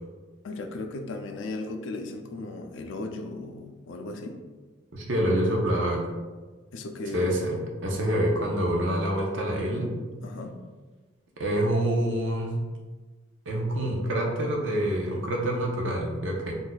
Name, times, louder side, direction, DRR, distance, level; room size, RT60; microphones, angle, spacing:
voice 1, 0.4-4.4 6.7-7.3 10.2-10.6, left 2 dB, 75° left, 5 dB, 0.4 m, -36 dB
voice 2, 4.9-6.1 7.1-10.0 11.4-12.6 13.5-16.5, right 1 dB, 85° right, 0 dB, 0.6 m, -26 dB
2.6 x 2.3 x 3.9 m, 1.3 s
head